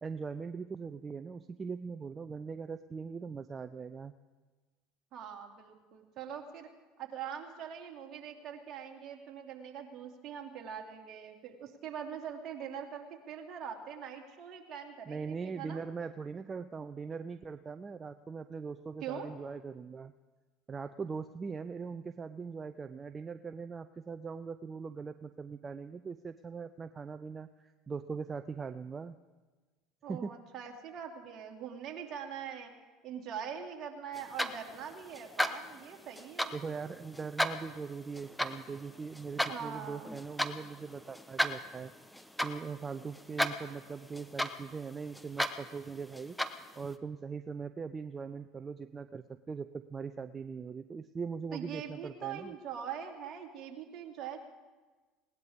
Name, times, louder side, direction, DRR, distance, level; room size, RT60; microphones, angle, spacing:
voice 1, 0.0-4.1 15.0-20.1 20.7-29.2 30.1-30.3 36.5-41.9 42.4-46.4 46.8-52.6, right 5 dB, 25° right, 10 dB, 0.6 m, -41 dB
voice 2, 5.1-6.7 7.0-15.8 19.0-19.3 30.0-32.7 33.0-36.5 39.5-40.1 51.5-54.4, right 8 dB, 50° right, 2 dB, 2.7 m, -43 dB
sound 1, 34.1-46.9, equal, 5° left, 1.1 m, -37 dB
20.0 x 18.5 x 3.7 m, 1.3 s
hypercardioid pair, 75°, 0 cm